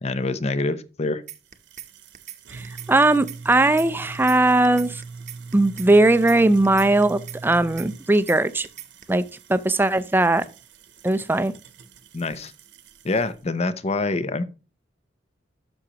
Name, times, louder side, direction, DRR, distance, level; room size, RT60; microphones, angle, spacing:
voice 1, 0.0-1.2 12.1-12.5 13.0-14.4, left 3 dB, 35° left, 0.6 m, -25 dB
sound 1, 1.3-1.9 2.1-2.4 2.6-3.9 4.1-4.4 4.6-5.9 6.1-6.4 6.6-7.9 8.1-8.4 8.6-9.0, right 12 dB, 40° right, 0.8 m, -39 dB
sound 2, 1.3-13.4, right 4 dB, 70° right, 0.9 m, -42 dB
voice 2, 2.5-5.0 5.5-8.7 9.1-9.2 9.5-10.4 11.0-11.5, right 2 dB, 10° right, 0.4 m, -19 dB
11.5 x 6.2 x 2.9 m
head